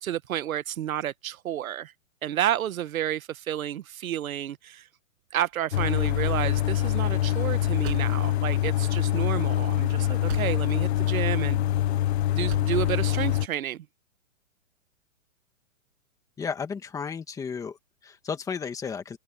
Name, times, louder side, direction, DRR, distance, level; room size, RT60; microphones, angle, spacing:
voice 1, 0.0-1.9 2.2-4.9 5.3-11.6 12.4-13.8, right 11 dB, 85° right, 1.1 m, -30 dB
sound 1, 5.3-10.9 11.2-11.9 12.3-12.9, right 40 dB or more, 30° right, 6.0 m, -45 dB
sound 2, 5.7-13.5, left 13 dB, 55° left, 0.6 m, -25 dB
voice 2, 16.4-19.2, left 6 dB, 10° left, 1.8 m, -33 dB
hypercardioid pair, 165°, 40 cm